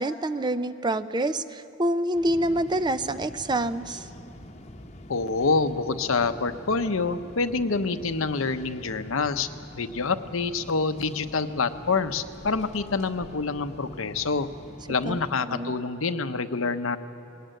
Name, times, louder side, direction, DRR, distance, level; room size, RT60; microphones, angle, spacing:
voice 1, 0.0-4.0 15.1-15.7, right 1 dB, 20° right, 12 dB, 0.5 m, -27 dB
Ambi Empty Train Station, 2.1-15.3, left 1 dB, 35° left, 1.0 m, -45 dB
voice 2, 5.1-9.5 9.7-14.5 14.9-17.0, left 4 dB, 80° left, 9 dB, 0.9 m, -27 dB
20.5 x 18.0 x 9.1 m, 2.7 s
head